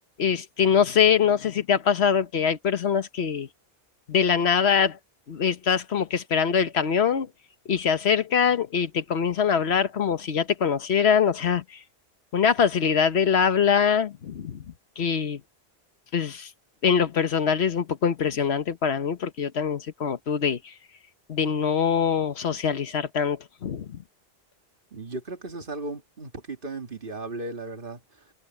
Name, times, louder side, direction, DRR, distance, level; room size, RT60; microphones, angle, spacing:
voice 1, 0.2-3.5 4.1-5.0 5.3-7.3 7.6-11.8 12.3-14.6 15.0-15.4 16.1-16.5 16.8-20.7 21.3-24.0, left 7 dB, 85° left, 1.3 m, -23 dB
voice 2, 24.9-28.3, right 2 dB, 55° right, 2.2 m, -36 dB
omnidirectional pair, 1.1 m